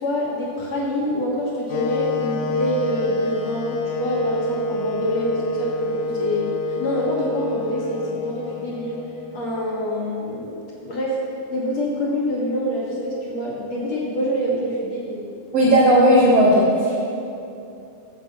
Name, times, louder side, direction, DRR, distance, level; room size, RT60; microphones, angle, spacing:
voice 1, 0.0-6.5 6.8-9.0 9.3-11.2 11.5-15.2, equal, 60° left, -4 dB, 1.8 m, -26 dB
Wind instrument woodwind instrument, 1.7-9.7, left 3 dB, 85° left, 2.8 m, -27 dB
voice 2, 15.5-17.0, equal, 75° right, -5 dB, 1.5 m, -15 dB
14.5 x 5.1 x 6.6 m, 2.7 s
omnidirectional pair, 4.7 m